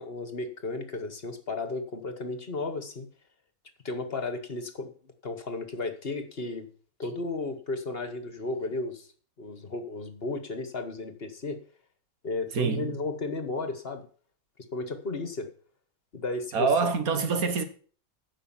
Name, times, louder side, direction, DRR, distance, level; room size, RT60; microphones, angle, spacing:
voice 1, 0.0-3.1 3.8-4.9 5.2-6.7 7.0-9.1 9.4-11.6 12.2-14.0 14.7-15.5 16.1-16.7, left 3 dB, 45° left, 1.5 m, -34 dB
voice 2, 12.5-12.9 16.5-17.6, right 5 dB, 80° right, 1.8 m, -25 dB
10.0 x 6.3 x 7.3 m
omnidirectional pair, 1.5 m